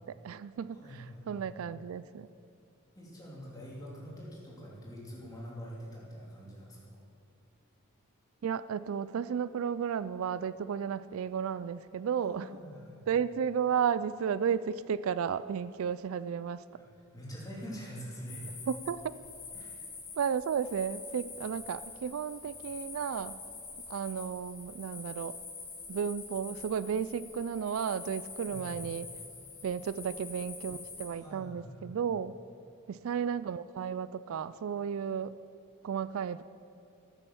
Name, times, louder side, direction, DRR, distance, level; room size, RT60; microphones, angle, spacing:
voice 1, 0.0-2.3 8.4-12.5 13.1-16.6 18.7-19.1 20.2-23.4 23.9-25.4 25.9-29.1 29.6-32.3 32.9-35.4 35.8-36.4, right 7 dB, 75° right, 16 dB, 0.3 m, -33 dB
voice 2, 0.8-1.4 2.9-6.8 12.2-13.0 16.8-16.9 17.1-18.5 19.5-19.7 28.5-28.7 31.1-32.0, equal, 15° left, -5 dB, 2.9 m, -45 dB
sound 1, 18.2-31.1, left 4 dB, 40° left, 3.5 m, -46 dB
13.5 x 9.1 x 7.0 m, 2.6 s
head